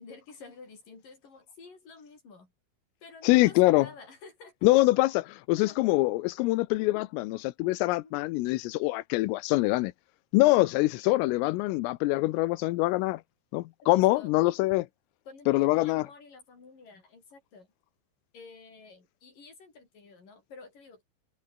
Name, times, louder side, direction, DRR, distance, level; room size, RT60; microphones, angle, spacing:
voice 1, 0.0-2.5 3.0-4.7 5.6-5.8 8.0-8.2 13.9-14.3 15.3-17.7 18.3-21.0, left 4 dB, 40° left, 7.6 m, -50 dB
voice 2, 3.2-3.9 4.6-9.9 10.3-13.2 13.5-14.9 15.5-16.0, left 20 dB, 85° left, 3.4 m, -24 dB
omnidirectional pair, 5.9 m